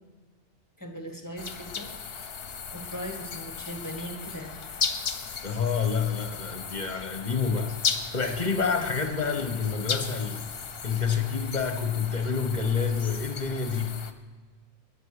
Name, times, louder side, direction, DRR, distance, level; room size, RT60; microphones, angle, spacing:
voice 1, 0.8-2.3 2.7-4.5, equal, 15° left, 1.7 m, -39 dB
sound 1, 1.4-14.1, left 6 dB, 60° left, 1.1 m, -36 dB
voice 2, 5.4-10.4 10.8-14.0, left 5 dB, 40° left, 1.3 m, -28 dB
20.5 x 8.5 x 5.0 m
omnidirectional pair, 1.2 m